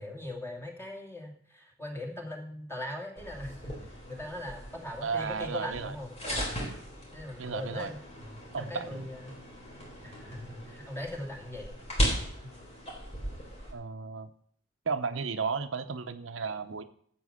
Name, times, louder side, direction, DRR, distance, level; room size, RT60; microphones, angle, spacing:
voice 1, 0.0-6.6 7.1-9.4 10.0-11.7 12.4-12.5, left 1 dB, 10° left, 1 dB, 2.4 m, -40 dB
sound 1, 3.2-13.7, equal, 35° left, 3.9 m, -37 dB
voice 2, 5.0-5.9 7.4-7.9 8.5-9.1 13.7-14.3 14.9-16.8, right 5 dB, 85° right, 9 dB, 0.8 m, -34 dB
12.5 x 7.8 x 6.4 m, 0.62 s
head